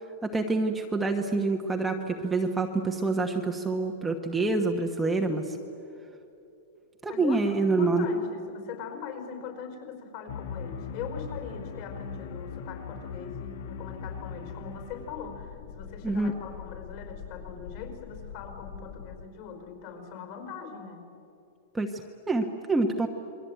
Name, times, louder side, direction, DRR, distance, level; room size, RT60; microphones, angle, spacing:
voice 1, 0.2-5.6 7.0-8.1 16.0-16.3 21.7-21.9 22.3-23.1, right 3 dB, 5° right, 2 dB, 1.1 m, -26 dB
voice 2, 7.1-21.0, left 6 dB, 45° left, 5 dB, 4.9 m, -41 dB
sound 1, 10.3-19.3, left 6 dB, 60° left, 1.5 m, -41 dB
28.0 x 22.5 x 9.2 m, 2.8 s
supercardioid pair, 165°, 0 cm